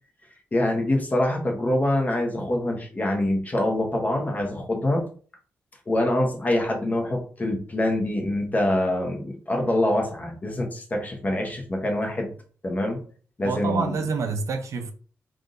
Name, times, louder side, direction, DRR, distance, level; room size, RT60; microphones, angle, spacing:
voice 1, 0.5-5.0 5.9-12.3 12.6-13.0 13.4-13.9, left 1 dB, 30° left, 1.1 m, -25 dB
voice 2, 13.4-14.9, right 4 dB, 70° right, 0.6 m, -27 dB
3.6 x 2.5 x 3.9 m
wide cardioid pair, 110°, 5 cm